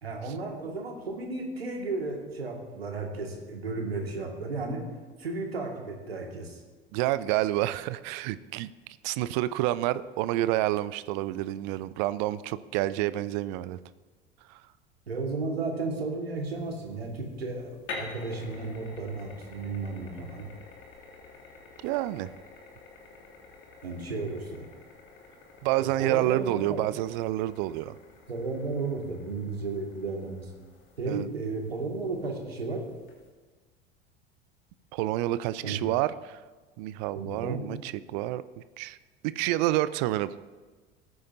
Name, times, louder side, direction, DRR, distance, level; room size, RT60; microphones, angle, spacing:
voice 1, 0.0-4.8 5.2-6.6 15.1-20.5 23.8-24.7 25.8-26.8 28.3-30.5 31.0-32.9 35.6-35.8 37.1-37.6, right 3 dB, 80° right, 2 dB, 2.0 m, -34 dB
voice 2, 6.9-8.7 9.0-13.8 14.5-14.6 21.8-22.3 25.6-27.9 31.1-31.3 34.9-36.4 36.8-38.4 38.8-39.0 39.2-40.3, right 15 dB, 50° right, 16 dB, 0.5 m, -28 dB
sound 1, 16.4-33.3, left 3 dB, 40° left, 2.7 m, -48 dB
19.0 x 9.5 x 2.7 m, 1.4 s
figure-of-eight pair, 70°, 30 cm